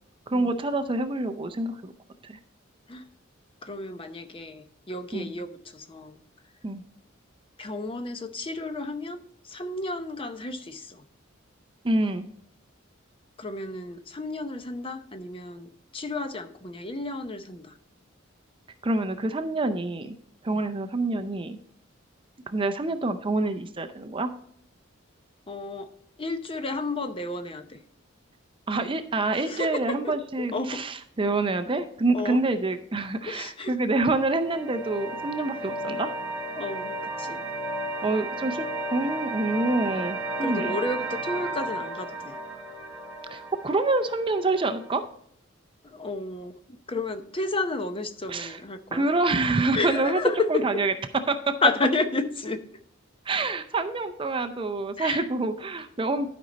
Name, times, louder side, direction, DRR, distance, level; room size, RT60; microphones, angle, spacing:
voice 1, 0.3-1.9 2.2-2.4 5.1-5.3 6.6-6.8 11.8-12.3 18.8-20.2 20.4-21.6 22.5-24.3 28.7-36.1 38.0-38.7 38.9-40.8 43.3-45.0 48.3-48.6 48.9-50.2 50.5-50.9 51.3-51.5 53.3-56.3, right 2 dB, 25° right, 8 dB, 0.5 m, -27 dB
voice 2, 3.6-6.2 7.6-11.0 13.4-17.7 20.5-20.6 25.5-25.9 26.2-27.8 29.5-30.8 32.1-32.4 33.3-33.7 36.6-37.4 40.4-42.4 45.8-46.5 46.9-49.1 49.7-50.6 51.6-52.6 55.0-55.3, left 2 dB, 25° left, 8 dB, 0.7 m, -31 dB
sound 1, 33.9-45.0, right 2 dB, 5° right, 1.6 m, -34 dB
12.5 x 5.2 x 4.0 m, 0.67 s
head